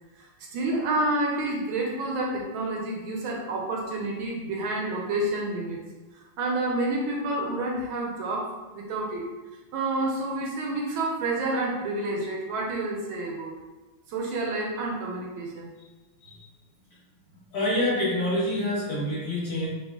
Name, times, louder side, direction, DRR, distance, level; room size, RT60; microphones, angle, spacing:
voice 1, 0.2-5.8 6.4-9.2 9.7-13.5 14.1-15.7, right 2 dB, 75° right, -2 dB, 1.4 m, -29 dB
voice 2, 17.5-19.7, left 1 dB, 50° left, -9 dB, 1.8 m, -27 dB
5.5 x 2.4 x 2.3 m, 1.2 s
omnidirectional pair, 2.4 m